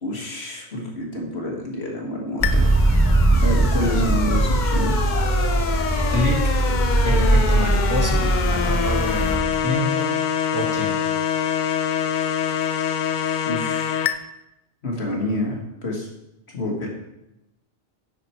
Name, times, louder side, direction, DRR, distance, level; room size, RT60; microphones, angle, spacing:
voice 1, 0.0-3.0 3.4-5.2 13.5-14.2 14.8-16.1 16.5-16.9, left 1 dB, 80° left, 0 dB, 2.0 m, -28 dB
sound 1, 2.4-14.1, left 8 dB, 55° left, 0.6 m, -26 dB
sound 2, 2.4-9.4, right 2 dB, 15° left, 1.3 m, -20 dB
sound 3, 3.3-13.5, equal, 55° right, 3.8 m, -43 dB
voice 2, 6.1-6.6 7.0-10.1 10.5-10.9, left 1 dB, 20° right, 1 dB, 1.4 m, -27 dB
9.0 x 6.1 x 4.5 m, 0.90 s
omnidirectional pair, 1.1 m